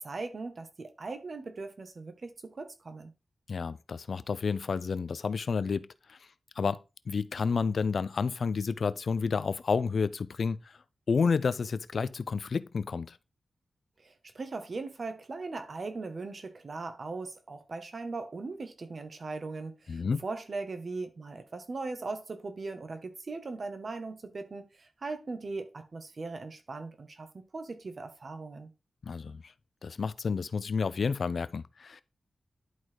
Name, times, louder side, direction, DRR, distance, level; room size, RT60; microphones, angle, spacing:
voice 1, 0.0-3.1 14.0-28.7, right 3 dB, 55° right, 1.7 m, -39 dB
voice 2, 3.5-6.2 6.6-6.8 7.1-10.8 11.1-13.2 19.9-20.2 29.0-29.5 29.8-32.0, left 5 dB, 70° left, 0.6 m, -30 dB
11.0 x 4.1 x 4.7 m
cardioid pair, 60°, 0 cm